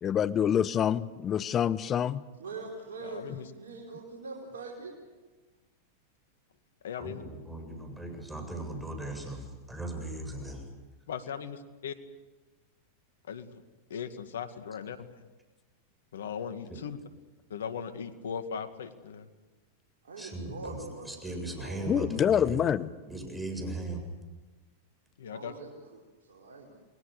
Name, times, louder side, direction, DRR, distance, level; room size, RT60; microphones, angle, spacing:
voice 1, 0.0-2.2 21.9-22.9, left 9 dB, 30° left, 17 dB, 0.9 m, -26 dB
voice 2, 2.4-5.1 20.0-22.3 25.3-26.8, right 3 dB, 80° right, -2 dB, 4.5 m, -43 dB
voice 3, 3.0-3.5 6.8-7.2 11.1-11.9 13.3-13.6 13.9-15.1 16.1-17.0 17.5-19.3 25.2-25.5, left 7 dB, 80° left, 9 dB, 2.1 m, -38 dB
voice 4, 7.0-10.6 16.7-16.8 20.2-22.7 23.1-24.0, right 2 dB, 5° right, 4 dB, 7.6 m, -38 dB
29.5 x 20.5 x 6.8 m, 1.2 s
hypercardioid pair, 105°, 0 cm